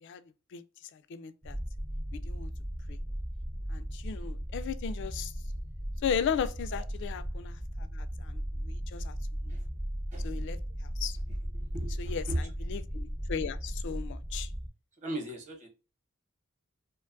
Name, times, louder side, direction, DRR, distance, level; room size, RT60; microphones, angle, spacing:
voice 1, 0.9-1.6 2.1-2.5 2.9-3.0 3.7-5.3 6.0-9.1 9.5-9.6 10.2-10.6 11.0-11.2 12.0-14.5, left 7 dB, 60° left, 0.3 m, -36 dB
sound 1, 1.4-14.7, equal, 15° right, 0.4 m, -36 dB
voice 2, 11.3-12.5 15.0-15.7, right 1 dB, 35° right, 0.9 m, -37 dB
2.5 x 2.2 x 2.4 m
head